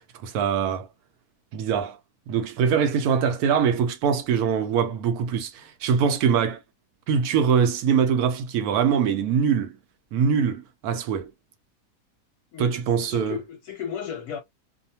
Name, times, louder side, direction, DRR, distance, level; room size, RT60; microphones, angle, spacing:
voice 1, 0.2-0.9 1.5-2.0 2.3-6.6 7.1-9.8 10.1-11.3 12.6-13.4, right 7 dB, 75° right, 1.0 m, -23 dB
voice 2, 12.5-12.8 13.1-14.4, left 8 dB, 70° left, 1.0 m, -34 dB
2.8 x 2.1 x 2.7 m
omnidirectional pair, 1.8 m